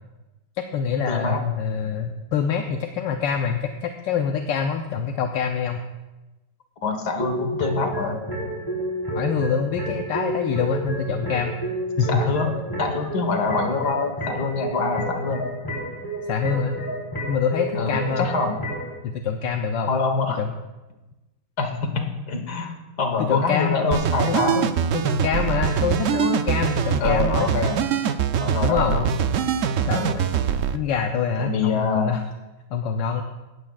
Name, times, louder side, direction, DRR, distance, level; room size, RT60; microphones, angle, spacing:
voice 1, 0.6-5.8 9.1-11.6 12.0-12.3 16.3-16.8 17.3-18.3 19.0-19.9 20.4-20.5 23.2-27.5 28.6-29.0 29.8-30.3 30.7-32.2 32.7-33.2, left 6 dB, 75° left, 4 dB, 1.4 m, -25 dB
voice 2, 1.1-1.4 6.8-8.2 12.1-12.5 12.8-15.5 17.8-18.6 19.9-20.4 21.6-24.7 27.0-27.8 28.4-29.1 30.0-30.2 31.4-32.1, left 4 dB, 60° left, 5 dB, 1.9 m, -25 dB
sound 1, 7.2-18.9, right 1 dB, 10° left, 3.5 m, -30 dB
sound 2, 23.9-30.8, right 8 dB, 90° right, 0.6 m, -23 dB
17.5 x 13.5 x 2.4 m, 1.1 s
omnidirectional pair, 2.1 m